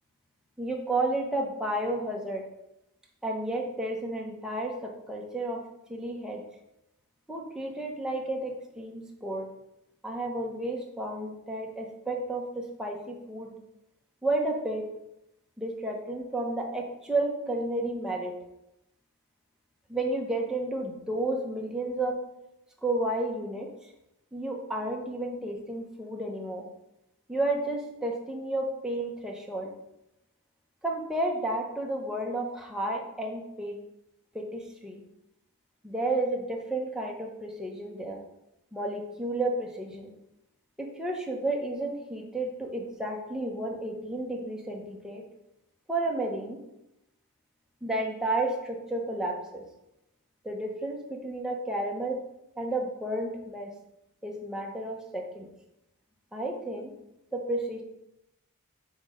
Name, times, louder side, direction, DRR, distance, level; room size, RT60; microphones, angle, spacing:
voice 1, 0.6-2.4 3.2-5.6 5.9-6.4 7.3-9.5 10.0-13.5 14.2-14.9 15.6-18.3 19.9-22.2 22.8-23.7 24.3-26.7 27.3-29.7 30.8-33.8 34.3-35.0 35.8-38.2 38.7-40.1 40.8-45.2 45.9-46.6 47.8-49.6 50.4-52.2 52.6-53.7 54.2-55.5 56.3-56.9 57.3-57.8, right 2 dB, 5° right, -1 dB, 0.9 m, -32 dB
6.0 x 4.3 x 5.1 m, 0.87 s
head